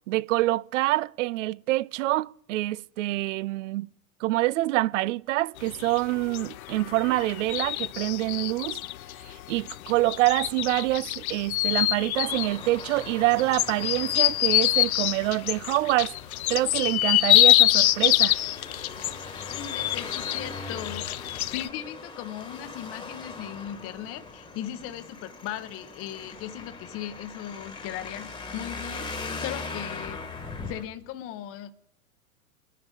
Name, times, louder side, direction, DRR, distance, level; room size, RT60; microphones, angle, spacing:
voice 1, 0.1-3.9 4.2-8.8 9.5-16.1 16.5-18.4, right 18 dB, 60° right, 0.5 m, -26 dB
sound 1, 5.6-21.7, left 15 dB, 75° left, 0.5 m, -25 dB
Traffic noise roadway noise, 12.1-30.8, left 3 dB, 10° left, 1.5 m, -40 dB
voice 2, 19.5-30.2 30.7-31.7, left 11 dB, 30° left, 0.9 m, -38 dB
23.5 x 10.0 x 3.8 m
hypercardioid pair, 115°, 43 cm